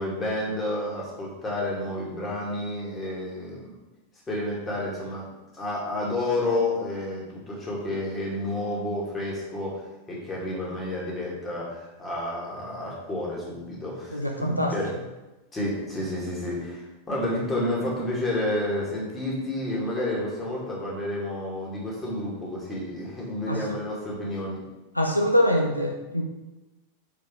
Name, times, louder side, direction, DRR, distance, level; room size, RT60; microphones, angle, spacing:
voice 1, 0.0-3.7 4.3-5.3 5.5-9.8 10.1-14.9 15.5-24.6, left 1 dB, 20° left, -4 dB, 2.2 m, -30 dB
voice 2, 14.1-14.7 23.5-23.8 24.9-26.2, equal, 85° left, 1 dB, 0.7 m, -24 dB
5.5 x 4.7 x 4.7 m, 1.1 s
figure-of-eight pair, 90°, 0 cm